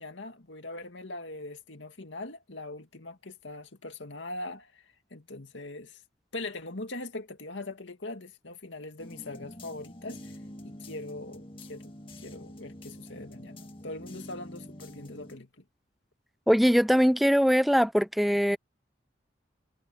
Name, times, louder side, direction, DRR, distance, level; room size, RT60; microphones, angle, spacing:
voice 1, 0.0-6.0 6.3-10.3 10.6-15.6, left 2 dB, 90° left, 2.3 m, -41 dB
sound 1, 9.0-15.4, left 1 dB, 30° left, 2.0 m, -46 dB
voice 2, 16.5-18.6, equal, ahead, 0.5 m, -22 dB
head